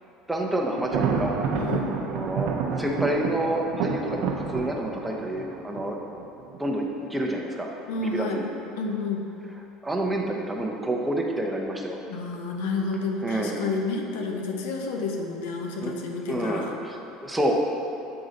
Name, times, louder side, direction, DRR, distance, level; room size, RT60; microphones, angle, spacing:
voice 1, 0.3-1.4 2.0-2.5 2.8-6.0 6.6-7.7 8.0-8.5 9.8-12.0 13.2-13.5 15.8-15.9 16.2-17.5, right 1 dB, 10° right, 0 dB, 0.7 m, -28 dB
Thunder, 0.8-6.6, right 6 dB, 70° right, 0.6 m, -29 dB
voice 2, 1.6-2.0 7.9-8.5 8.8-9.2 12.1-16.7, left 3 dB, 85° left, 2 dB, 0.7 m, -30 dB
7.9 x 3.8 x 4.0 m, 2.8 s
supercardioid pair, 110°, 0 cm